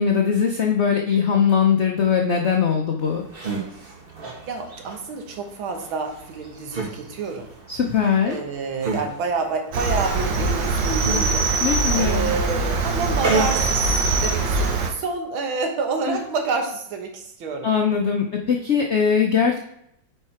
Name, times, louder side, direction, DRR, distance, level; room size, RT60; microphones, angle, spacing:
voice 1, 0.0-3.2 7.7-8.4 11.6-12.3 16.1-16.2 17.6-19.6, left 7 dB, 80° left, 1 dB, 0.6 m, -20 dB
sound 1, 3.0-14.5, right 3 dB, 35° right, 1.1 m, -32 dB
voice 2, 4.5-7.5 8.2-11.5 11.9-13.9 14.2-17.7, right 4 dB, 80° right, 4 dB, 1.9 m, -28 dB
Cricket, 9.7-14.9, right 3 dB, 65° right, 1.4 m, -22 dB
8.2 x 4.5 x 4.4 m, 0.75 s
omnidirectional pair, 2.2 m